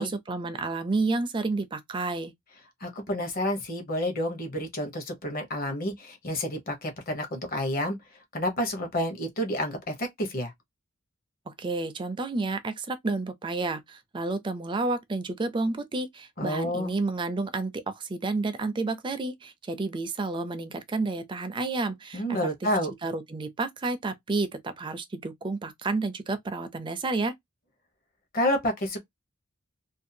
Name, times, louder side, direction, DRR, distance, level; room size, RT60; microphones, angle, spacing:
voice 1, 0.0-2.3 11.5-22.5 23.0-27.3, right 3 dB, 25° right, 0.4 m, -30 dB
voice 2, 2.8-8.0 8.3-10.5 16.4-16.9 22.1-22.9 28.3-29.0, left 1 dB, 45° left, 0.9 m, -29 dB
2.6 x 2.3 x 2.6 m
head